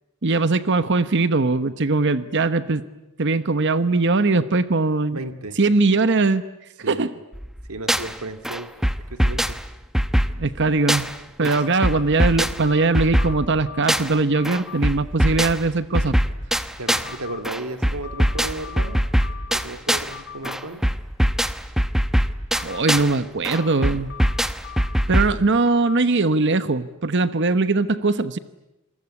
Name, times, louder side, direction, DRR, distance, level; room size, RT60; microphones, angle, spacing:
voice 1, 0.2-2.8 3.2-5.2 5.6-6.4 6.9-7.1 10.4-11.1 11.4-16.2 22.6-24.1 25.1-28.4, right 3 dB, 55° right, 13 dB, 1.0 m, -20 dB
voice 2, 5.1-5.6 6.8-7.1 7.7-8.7 9.1-9.6 11.4-11.6 16.8-19.0 19.5-20.9, right 2 dB, 85° right, 9 dB, 2.2 m, -34 dB
sound 1, 7.3-8.2 8.4-11.2 11.4-14.2 14.4-17.2 17.4-20.2 20.4-23.2 23.4-25.4, equal, ahead, 0.9 m, -23 dB
sound 2, 11.5-12.0 12.6-14.0 14.3-14.8 16.9-17.4 18.0-19.7 20.1-20.6 22.5-23.0 23.5-25.0 25.5-26.0, left 9 dB, 50° left, 2.6 m, -40 dB
28.5 x 21.0 x 9.8 m, 0.96 s
head